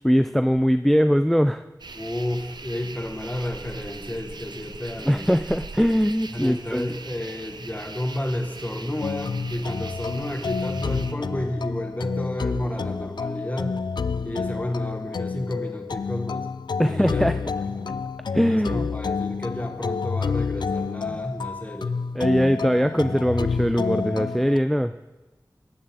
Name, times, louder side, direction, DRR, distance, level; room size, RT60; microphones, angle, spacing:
voice 1, 0.0-1.6 5.0-7.0 16.8-17.4 18.3-18.9 21.1-21.2 22.2-24.9, equal, 5° left, 11 dB, 0.4 m, -21 dB
sound 1, 1.8-11.1, right 4 dB, 80° right, 0.6 m, -40 dB
voice 2, 1.9-5.3 6.3-13.7 14.2-16.5 16.8-18.1 18.5-21.9, left 1 dB, 20° left, 4 dB, 1.6 m, -31 dB
sound 2, 9.0-24.6, left 5 dB, 90° left, 0.3 m, -29 dB
18.5 x 8.7 x 3.7 m, 1.1 s
wide cardioid pair, 45°, 7 cm